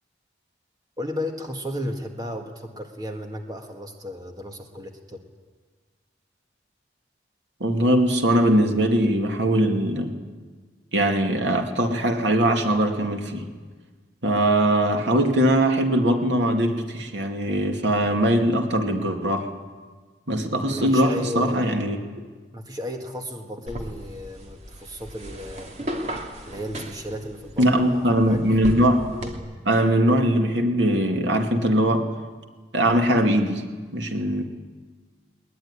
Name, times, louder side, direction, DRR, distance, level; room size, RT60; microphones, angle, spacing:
voice 1, 1.0-5.2 20.7-21.8 22.5-25.7 26.4-28.4, left 1 dB, 20° right, 3 dB, 1.9 m, -34 dB
voice 2, 7.6-10.1 10.9-13.5 14.2-19.5 20.3-22.0 27.6-29.0 29.6-32.1 32.7-33.6 33.9-34.4, right 1 dB, 85° right, 4 dB, 2.4 m, -21 dB
sound 1, 23.7-29.3, equal, 40° right, 2.6 m, -35 dB
21.0 x 20.0 x 9.9 m, 1.4 s
head